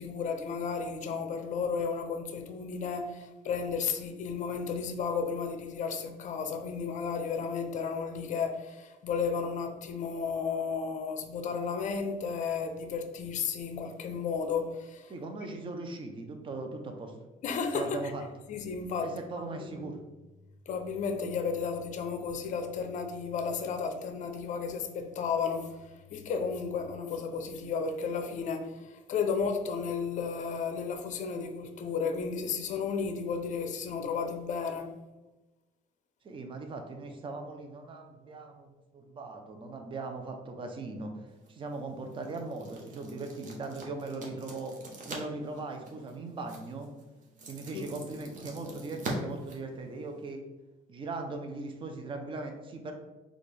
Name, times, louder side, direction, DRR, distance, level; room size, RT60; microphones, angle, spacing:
voice 1, 0.0-15.1 17.4-18.0 18.5-19.1 19.4-19.9 20.7-34.9 47.7-47.9, left 5 dB, 45° left, 6 dB, 0.5 m, -33 dB
voice 2, 15.1-17.1 17.7-18.2 19.0-20.0 36.2-41.1 41.5-44.8 45.1-46.9 47.5-50.4 50.9-52.9, right 3 dB, 30° right, 4 dB, 0.5 m, -39 dB
sound 1, 41.3-50.3, right 2 dB, 50° right, 0.9 m, -45 dB
4.2 x 2.4 x 3.2 m, 1.1 s
cardioid pair, 110°, 17 cm